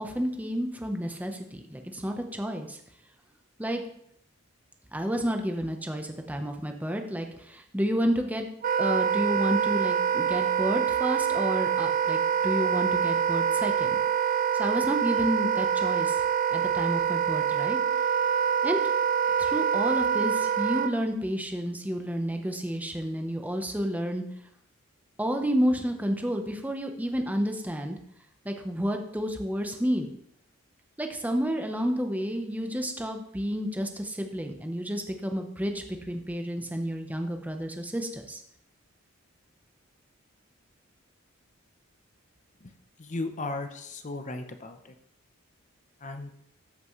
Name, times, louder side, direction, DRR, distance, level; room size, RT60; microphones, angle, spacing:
voice 1, 0.0-2.8 3.6-3.8 4.9-8.5 8.8-14.0 14.5-16.2 16.5-17.8 18.6-18.8 19.4-24.2 25.2-28.0 28.4-30.1 31.0-38.4, equal, 10° right, 4 dB, 0.8 m, -30 dB
Wind instrument woodwind instrument, 8.6-20.9, right 7 dB, 40° right, 0.4 m, -25 dB
voice 2, 43.0-44.8 46.0-46.3, left 2 dB, 35° left, 7 dB, 0.8 m, -35 dB
13.0 x 6.1 x 3.2 m, 0.70 s
head